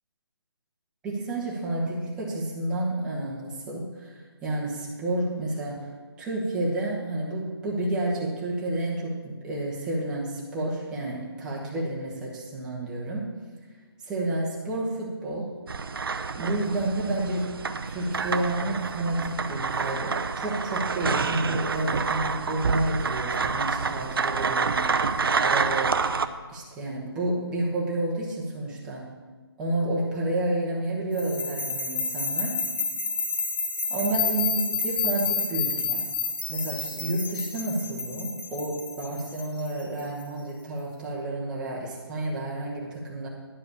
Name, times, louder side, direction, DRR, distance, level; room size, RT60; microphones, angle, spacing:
voice 1, 1.0-5.9 6.2-13.3 14.0-15.5 16.4-17.5 17.8-25.0 25.4-26.0 26.5-29.1 29.6-32.6 33.9-36.1 36.5-43.3, right 2 dB, 5° right, -5 dB, 1.0 m, -30 dB
sound 1, 15.7-26.3, right 5 dB, 60° right, 0.6 m, -28 dB
sound 2, 31.2-40.2, left 4 dB, 25° left, 1.1 m, -30 dB
11.0 x 4.9 x 6.9 m, 1.4 s
figure-of-eight pair, 165°, 14 cm